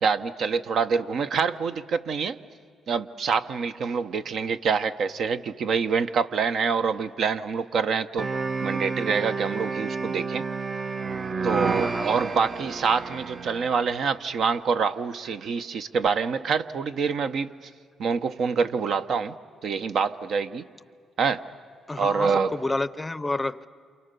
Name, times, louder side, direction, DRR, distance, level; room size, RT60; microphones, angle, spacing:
voice 1, 0.0-2.4 2.9-8.3 8.6-10.4 11.4-17.5 18.0-19.3 19.6-20.6 21.2-21.5 22.0-22.5, right 5 dB, 65° right, 0.8 m, -26 dB
sound 1, 8.2-14.1, right 4 dB, 35° right, 0.6 m, -30 dB
voice 2, 11.8-12.2 12.6-12.7 21.9-23.7, left 2 dB, 15° left, 0.6 m, -30 dB
28.5 x 28.0 x 6.8 m
cardioid pair, 90°, 0 cm